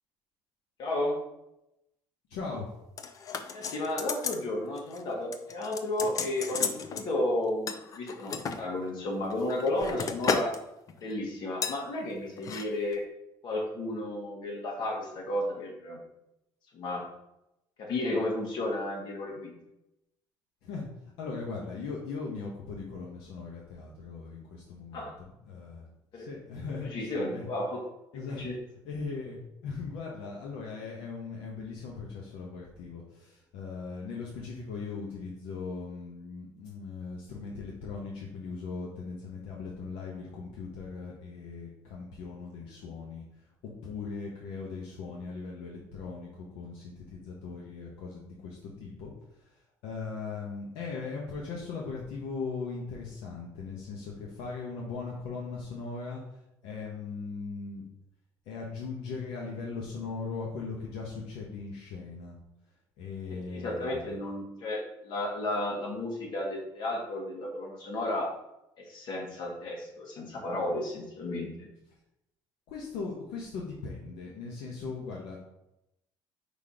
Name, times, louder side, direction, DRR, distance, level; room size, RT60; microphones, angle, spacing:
voice 1, 0.8-1.2 3.5-10.5 11.0-13.0 13.4-16.0 16.7-17.0 17.8-19.6 24.9-25.1 26.1-26.3 26.8-27.8 28.4-28.5 63.5-68.3 68.8-71.7, left 1 dB, 60° left, 0 dB, 2.0 m, -33 dB
voice 2, 2.3-2.7 20.6-20.9 21.2-27.5 28.1-28.5 28.8-43.2 43.6-57.9 58.5-62.3 63.0-64.1 72.7-75.4, left 4 dB, 85° left, -2 dB, 1.2 m, -39 dB
sound 1, 3.0-4.4 4.8-5.0 5.3-7.1 7.7-8.6 9.2-10.6 10.9-11.1 11.6-11.8 12.4-12.6 12.9-13.0, left 6 dB, 45° left, 0.6 m, -33 dB
5.2 x 4.3 x 5.0 m, 0.87 s
cardioid pair, 120°, 8 cm